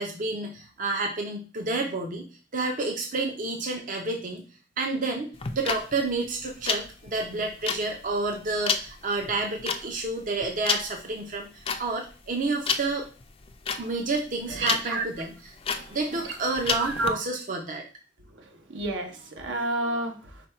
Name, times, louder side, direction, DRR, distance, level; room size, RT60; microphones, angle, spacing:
voice 1, 0.0-2.2 2.5-4.4 4.8-13.1 13.8-15.3 15.9-17.8, right 3 dB, 45° right, 2 dB, 0.7 m, -30 dB
sound 1, 5.3-17.1, left 5 dB, 30° left, 0.4 m, -31 dB
voice 2, 14.5-15.0 15.7-15.9 16.8-17.2 18.7-20.4, right 2 dB, 70° right, 4 dB, 0.9 m, -30 dB
5.1 x 2.3 x 4.3 m, 0.36 s
head